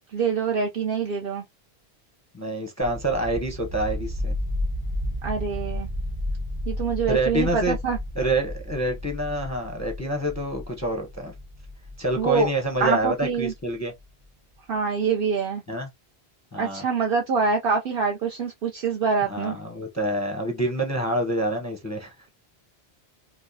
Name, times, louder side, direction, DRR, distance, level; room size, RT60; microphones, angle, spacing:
voice 1, 0.1-1.4 5.2-5.9 6.7-8.0 12.2-12.5 12.8-13.5 14.7-15.6 16.6-19.6, right 5 dB, 60° right, 0.8 m, -25 dB
voice 2, 2.3-4.3 7.1-7.8 8.2-11.3 12.0-13.9 15.7-15.9 16.5-16.8 19.3-22.1, right 1 dB, 20° left, 0.5 m, -27 dB
sound 1, 2.8-13.5, left 1 dB, 25° right, 0.6 m, -32 dB
4.5 x 2.1 x 2.6 m
omnidirectional pair, 1.1 m